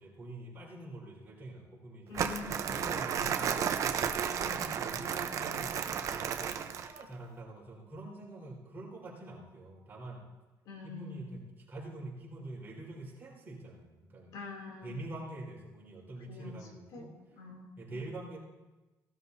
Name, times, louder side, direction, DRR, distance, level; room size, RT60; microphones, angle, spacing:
voice 1, 0.0-2.2 2.7-3.9 4.2-5.8 6.3-10.3 10.8-14.3 14.8-17.1 17.8-18.4, right 2 dB, 30° right, -5 dB, 4.4 m, -45 dB
voice 2, 2.1-3.0 10.6-11.2 14.3-14.9 16.2-17.0 17.3-18.1, left 5 dB, 65° left, 0 dB, 3.0 m, -46 dB
Crumpling crinkling, 2.1-7.0, right 7 dB, 50° right, 0.8 m, -33 dB
18.0 x 12.5 x 2.8 m, 1.1 s
cardioid pair, 130°, 7 cm